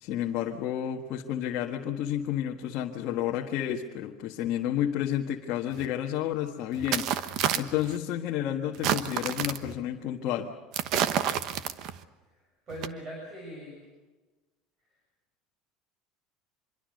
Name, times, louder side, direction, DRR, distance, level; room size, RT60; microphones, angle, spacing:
voice 1, 0.0-10.5, left 11 dB, 45° left, 1 dB, 1.5 m, -31 dB
sound 1, 5.8-5.9 6.8-8.0 8.7-9.7 10.7-12.0 12.7-12.9, right 10 dB, 45° right, 1.1 m, -29 dB
voice 2, 12.7-13.8, equal, 25° right, 0 dB, 6.5 m, -40 dB
25.5 x 22.5 x 6.6 m, 1.2 s
cardioid pair, 170°, 0 cm